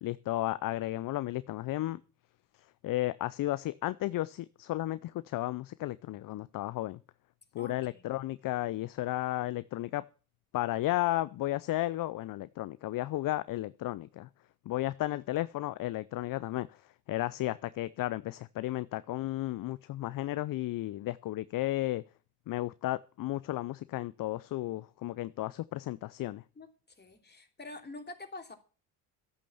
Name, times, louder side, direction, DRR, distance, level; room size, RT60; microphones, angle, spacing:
voice 1, 0.0-2.0 2.8-7.0 7.5-10.0 10.5-14.3 14.7-16.8 17.1-22.0 22.5-26.4, left 16 dB, 50° left, 17 dB, 0.6 m, -33 dB
voice 2, 7.6-8.0 26.5-28.5, left 2 dB, 20° left, 4 dB, 3.2 m, -46 dB
12.5 x 8.4 x 7.1 m, 0.38 s
hypercardioid pair, 55°, 45 cm